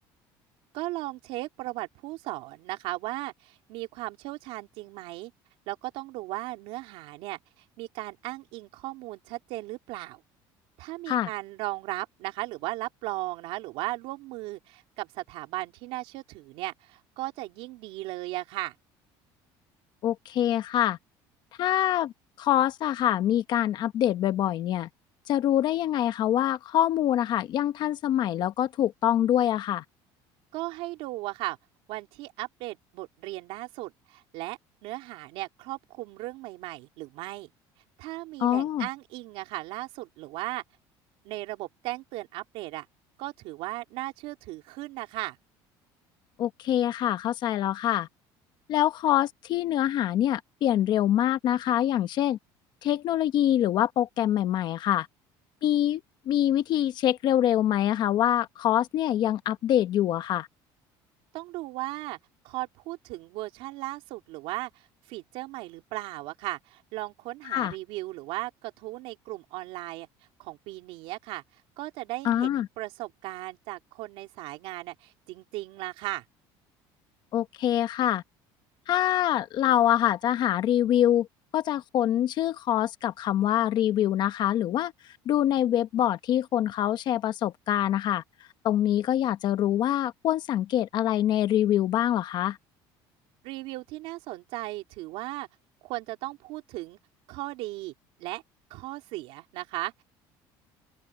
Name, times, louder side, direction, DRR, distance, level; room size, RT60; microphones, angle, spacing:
voice 1, 0.7-5.3 5.7-7.4 7.8-10.2 10.8-18.8 30.5-31.6 31.9-37.5 38.0-40.6 41.2-42.9 43.2-45.4 61.3-62.2 62.4-70.1 70.4-71.4 71.8-76.2 93.4-95.5 95.8-97.0 97.3-97.9 98.2-98.4 98.7-100.0, right 19 dB, 75° right, 3.5 m, -36 dB
voice 2, 20.0-21.0 21.6-22.1 22.4-24.9 25.3-29.8 38.4-38.9 46.4-48.1 48.7-52.4 52.8-55.1 55.6-56.0 56.3-60.5 67.4-67.7 72.2-72.7 77.3-78.2 78.9-81.3 81.5-84.9 85.3-88.2 88.6-92.6, left 11 dB, 50° left, 1.1 m, -25 dB
open air
cardioid pair, 140°, 10 cm